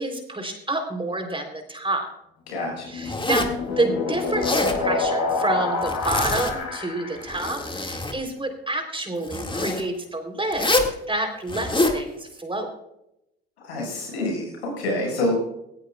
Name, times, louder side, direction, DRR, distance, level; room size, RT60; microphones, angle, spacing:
voice 1, 0.0-2.1 2.9-10.7 11.1-12.7, right 2 dB, 15° right, 4 dB, 3.6 m, -28 dB
voice 2, 2.5-3.1 13.6-15.4, left 1 dB, 85° left, -1 dB, 6.3 m, -27 dB
sound 1, 2.7-7.5, left 4 dB, 65° left, 6.1 m, -27 dB
Zipper (clothing), 3.1-3.6 4.3-4.8 5.8-6.7 7.2-8.2 9.2-9.8 10.5-11.0 11.5-12.0, left 2 dB, 15° left, 2.1 m, -25 dB
17.5 x 17.0 x 2.4 m, 0.83 s
hypercardioid pair, 60°, 31 cm